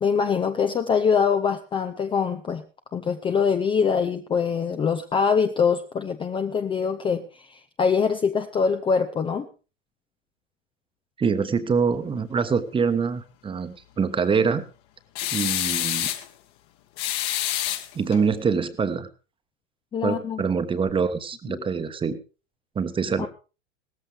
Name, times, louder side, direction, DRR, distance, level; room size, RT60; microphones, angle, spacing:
voice 1, 0.0-2.6 2.9-9.5 19.9-20.4 21.5-21.6 23.2-23.3, left 6 dB, 15° left, 7 dB, 0.7 m, -24 dB
voice 2, 11.2-14.7 15.3-16.1 17.9-19.1 20.0-22.2 22.7-23.3, right 5 dB, 15° right, 11 dB, 1.3 m, -25 dB
sound 1, 15.2-16.3 17.0-18.2, left 13 dB, 40° left, 1.6 m, -27 dB
17.5 x 14.0 x 3.5 m, 0.34 s
figure-of-eight pair, 100°, 37 cm